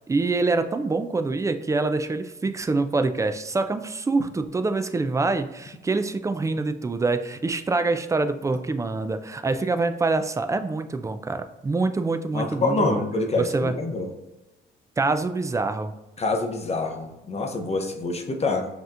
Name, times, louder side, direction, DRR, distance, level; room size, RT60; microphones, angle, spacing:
voice 1, 0.1-13.0 13.4-13.7 15.0-15.9, right 3 dB, 15° right, 9 dB, 0.3 m, -25 dB
voice 2, 12.3-14.1 16.2-18.7, left 3 dB, 30° left, 3 dB, 0.6 m, -26 dB
5.3 x 2.9 x 2.5 m, 1.0 s
cardioid pair, 90°, 20 cm